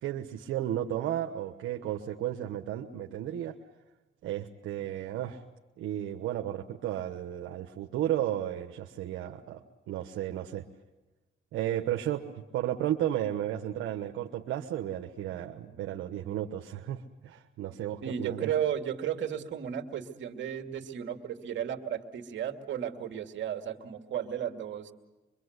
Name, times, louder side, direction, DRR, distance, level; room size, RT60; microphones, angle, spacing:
voice 1, 0.0-3.6 4.2-5.4 5.8-10.7 11.5-18.5, right 12 dB, 85° right, 3 dB, 1.2 m, -33 dB
voice 2, 18.0-24.9, right 9 dB, 70° right, 4 dB, 2.6 m, -34 dB
25.0 x 24.0 x 8.2 m, 1.1 s
cardioid pair, 90°, 20 cm